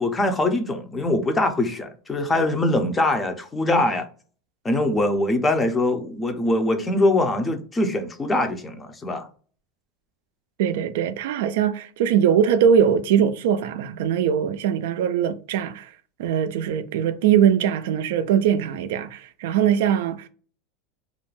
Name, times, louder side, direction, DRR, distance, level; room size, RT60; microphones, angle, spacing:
voice 1, 0.0-4.0 4.6-9.3, left 2 dB, 15° left, 0.5 m, -23 dB
voice 2, 10.6-15.9 16.2-20.3, right 8 dB, 75° right, 0.3 m, -21 dB
2.4 x 2.1 x 3.1 m
supercardioid pair, 140°, 0 cm